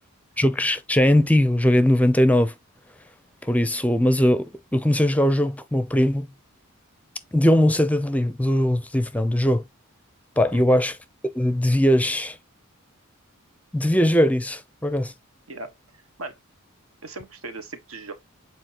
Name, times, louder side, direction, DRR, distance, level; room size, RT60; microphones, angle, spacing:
voice 1, 0.4-2.5 3.4-6.3 7.3-9.6 10.4-11.0 11.3-12.4 13.7-15.1, left 1 dB, 5° left, 0.5 m, -20 dB
voice 2, 10.5-10.8 15.5-15.7 16.2-16.4 17.0-18.2, right 2 dB, 70° right, 1.4 m, -37 dB
7.8 x 4.6 x 3.0 m
head